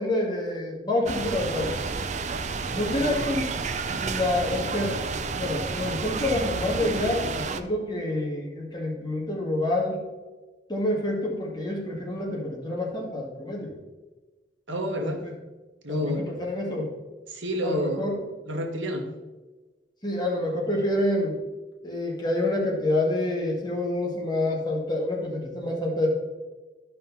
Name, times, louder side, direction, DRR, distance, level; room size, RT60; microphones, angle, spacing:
voice 1, 0.0-1.7 2.7-3.5 3.9-5.0 5.4-10.0 10.7-13.7 15.0-15.3 15.9-16.9 17.6-18.2 20.0-21.3 21.8-26.1, left 1 dB, 20° left, -2 dB, 2.1 m, -27 dB
sound 1, 1.1-7.6, right 4 dB, 40° right, 0.5 m, -30 dB
voice 2, 2.8-3.2 14.7-15.2 15.8-16.3 17.3-18.1 18.5-19.1, equal, 80° right, 3 dB, 1.5 m, -29 dB
12.5 x 5.6 x 4.1 m, 1.2 s
head